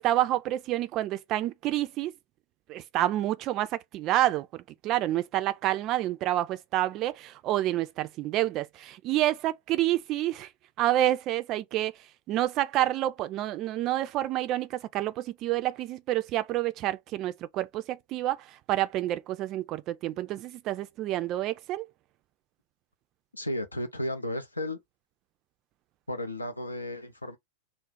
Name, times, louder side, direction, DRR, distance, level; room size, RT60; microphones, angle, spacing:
voice 1, 0.0-2.1 2.7-10.5 10.8-11.9 12.3-21.9, right 14 dB, 35° right, 0.3 m, -28 dB
voice 2, 23.3-24.8 26.1-27.4, left 1 dB, 85° left, 0.5 m, -33 dB
2.4 x 2.0 x 3.7 m
figure-of-eight pair, 90°, 0 cm